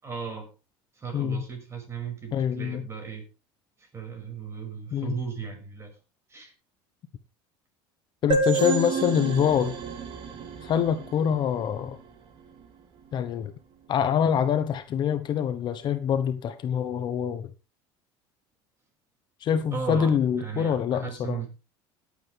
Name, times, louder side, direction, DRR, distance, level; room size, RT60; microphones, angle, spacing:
voice 1, 0.0-0.5 0.9-3.3 3.8-6.0 6.3-6.5 19.7-21.5, right 6 dB, 25° right, 6.2 m, -36 dB
voice 2, 1.1-1.4 2.3-2.8 4.9-5.1 8.2-9.8 10.6-12.0 13.1-13.5 13.9-17.5 19.4-21.4, left 8 dB, 45° left, 1.2 m, -25 dB
sound 1, 8.3-11.8, right 4 dB, 50° right, 2.9 m, -29 dB
17.5 x 8.5 x 3.5 m
supercardioid pair, 125°, 11 cm